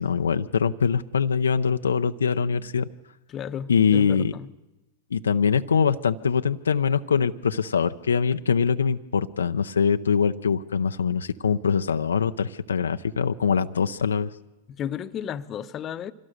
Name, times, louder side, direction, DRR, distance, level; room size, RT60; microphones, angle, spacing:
voice 1, 0.0-2.9 3.7-4.3 5.1-14.3, left 6 dB, 90° left, 8 dB, 0.6 m, -23 dB
voice 2, 3.3-4.5 14.7-16.1, left 9 dB, 35° left, 10 dB, 0.9 m, -33 dB
25.0 x 18.0 x 6.5 m, 1.0 s
hypercardioid pair, 105°, 0 cm